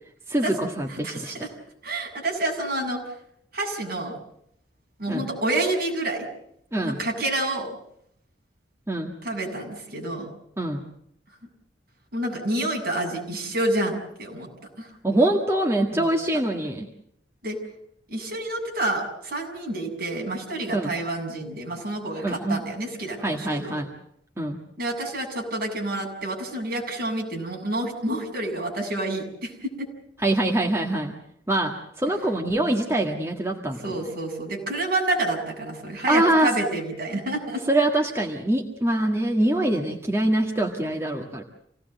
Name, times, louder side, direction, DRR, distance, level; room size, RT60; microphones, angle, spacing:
voice 1, 0.3-1.4 5.1-5.2 6.7-7.0 8.9-9.1 10.6-10.8 15.0-16.9 20.7-20.9 22.2-22.6 23.2-23.9 24.4-24.6 30.2-31.2 31.5-34.0 36.1-36.5 37.7-41.4, right 1 dB, 15° right, 0 dB, 1.8 m, -24 dB
voice 2, 0.9-1.5 1.8-3.0 3.5-4.1 5.0-6.3 6.8-7.7 9.2-10.3 12.1-14.5 14.8-14.9 15.9-16.1 17.4-17.6 18.1-23.8 24.8-29.7 33.8-37.6, right 1 dB, 55° right, 0 dB, 7.4 m, -28 dB
27.5 x 18.0 x 8.0 m, 0.72 s
head